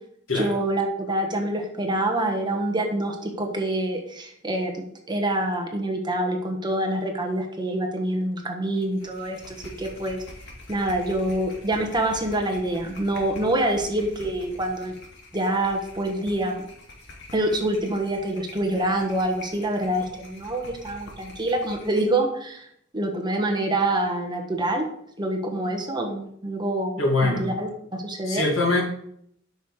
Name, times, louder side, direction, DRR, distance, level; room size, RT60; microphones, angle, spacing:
voice 1, 0.3-4.7 5.1-10.2 10.7-14.9 15.3-16.6 17.3-22.7 22.9-24.9 25.2-28.4, right 1 dB, 20° right, 3 dB, 1.3 m, -26 dB
sound 1, 8.8-22.2, left 1 dB, 60° left, 2.2 m, -45 dB
voice 2, 27.0-27.5 28.3-28.8, left 2 dB, 90° left, 1 dB, 2.4 m, -22 dB
9.2 x 6.3 x 4.9 m, 0.68 s
head